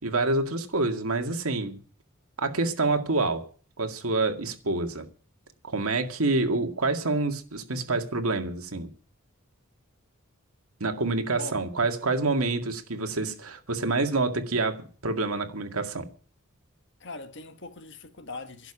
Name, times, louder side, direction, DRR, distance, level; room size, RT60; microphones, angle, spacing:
voice 1, 0.0-1.8 2.4-3.5 3.8-5.1 5.6-8.9 10.8-16.1, right 3 dB, 85° right, 2.1 m, -27 dB
voice 2, 17.0-18.7, left 2 dB, 55° left, 1.5 m, -40 dB
12.0 x 8.1 x 9.8 m
head